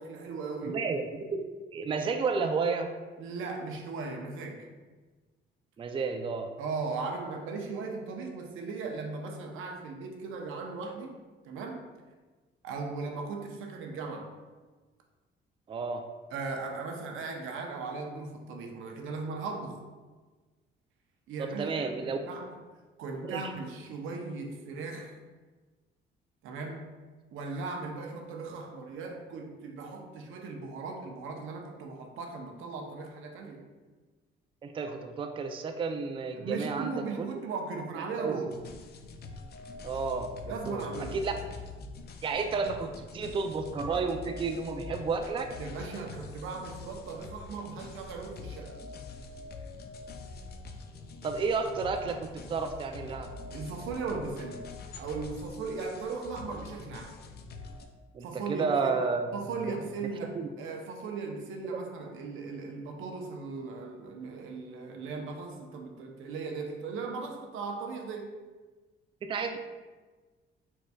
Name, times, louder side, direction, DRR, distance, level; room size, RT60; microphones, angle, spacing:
voice 1, 0.0-0.8 3.2-4.7 6.6-11.1 11.5-11.9 12.6-14.3 16.3-19.8 21.3-22.6 23.0-25.2 26.4-26.9 27.3-33.7 36.4-38.5 40.5-41.2 45.6-48.8 53.5-54.7 55.0-57.2 58.2-68.4, right 4 dB, 85° right, 2 dB, 0.6 m, -38 dB
voice 2, 0.6-1.4 1.7-2.9 5.8-6.5 15.7-16.0 21.4-22.2 23.3-23.4 34.6-37.3 38.2-38.4 39.8-40.9 41.1-41.3 42.2-45.5 51.2-53.3 58.1-59.2 60.4-60.5 69.2-69.6, right 4 dB, 25° right, 5 dB, 0.3 m, -31 dB
sound 1, 38.5-57.9, left 3 dB, 55° left, 0.5 m, -45 dB
4.6 x 4.2 x 2.2 m, 1.3 s
cardioid pair, 90°, 20 cm